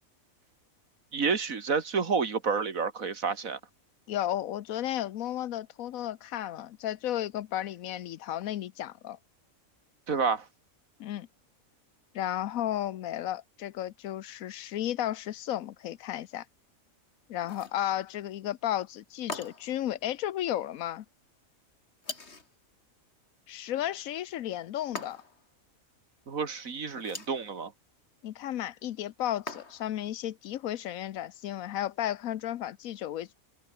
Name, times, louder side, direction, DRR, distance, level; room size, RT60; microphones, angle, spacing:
voice 1, 1.1-3.6 10.1-10.5 26.3-27.7, right 5 dB, 80° right, 2.4 m, -29 dB
voice 2, 4.1-9.2 11.0-11.3 12.1-16.4 17.3-21.0 23.5-25.2 28.2-33.3, left 12 dB, 85° left, 1.1 m, -33 dB
sound 1, 17.4-17.8 19.3-19.8 22.0-22.5 25.0-25.5 26.9-27.4 29.5-30.0, left 3 dB, 50° left, 3.1 m, -41 dB
omnidirectional pair, 1.4 m